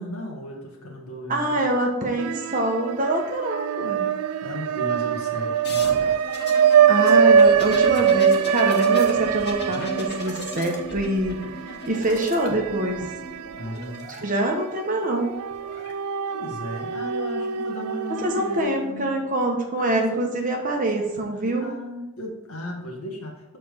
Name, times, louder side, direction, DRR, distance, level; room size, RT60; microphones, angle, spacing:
voice 1, 0.0-1.6 4.4-6.0 13.5-14.1 16.3-19.2 19.8-20.3 21.6-23.6, left 1 dB, 75° left, -1 dB, 1.7 m, -35 dB
voice 2, 1.3-4.1 6.9-11.4 11.9-13.0 14.2-15.3 18.2-21.7, right 1 dB, 35° right, 1 dB, 1.1 m, -25 dB
sound 1, 2.2-3.0 3.3-13.6 14.0-14.1 15.2-18.6, right 7 dB, 80° right, 0.3 m, -22 dB
sound 2, 5.6-14.2 15.3-15.9, left 1 dB, 45° left, 1.1 m, -37 dB
6.7 x 4.3 x 5.1 m, 0.98 s
head